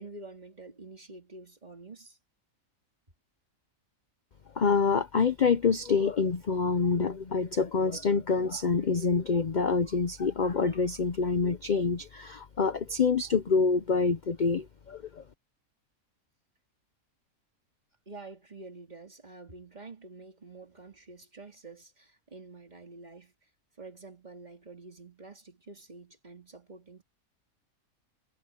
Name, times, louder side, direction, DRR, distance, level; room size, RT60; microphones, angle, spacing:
voice 1, 0.0-2.2 18.1-23.3 23.8-27.0, right 3 dB, 30° right, 2.8 m, -48 dB
voice 2, 4.6-15.2, left 5 dB, 45° left, 0.7 m, -26 dB
omnidirectional pair, 1.5 m